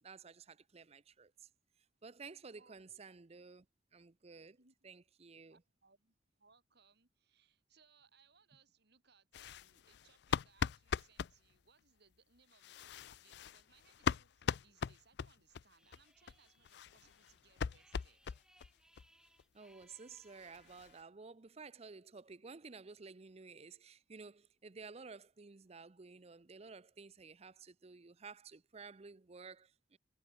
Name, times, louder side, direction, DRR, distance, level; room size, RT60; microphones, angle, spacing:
voice 1, 0.0-1.5 2.0-3.7 3.9-4.6 4.8-5.6 19.5-30.0, right 4 dB, 35° right, 0.6 m, -53 dB
voice 2, 5.5-18.4, right 5 dB, 60° right, 4.2 m, -70 dB
sound 1, 9.3-11.3 12.5-15.6 15.9-16.0 16.3-16.4 16.6-18.7 19.0-19.1 19.4-19.5 19.8-19.9 20.2-21.0, left 6 dB, 60° left, 0.4 m, -40 dB
sound 2, 15.8-21.1, right 1 dB, 5° right, 6.3 m, -70 dB
head